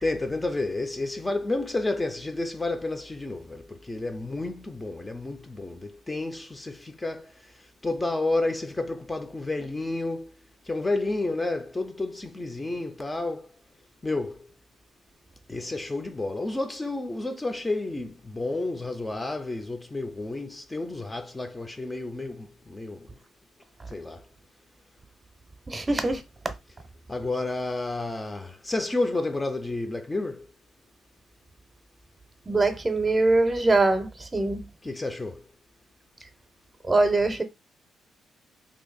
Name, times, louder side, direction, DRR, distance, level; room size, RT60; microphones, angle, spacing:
voice 1, 0.0-10.3 10.7-13.5 14.0-14.4 15.5-23.1 23.9-24.2 27.1-30.5 34.8-35.5, left 2 dB, 15° left, 0.4 m, -31 dB
voice 2, 25.7-26.2 32.5-34.6 36.8-37.4, right 2 dB, 25° right, 0.6 m, -23 dB
2.9 x 2.6 x 3.9 m
cardioid pair, 90°, 0 cm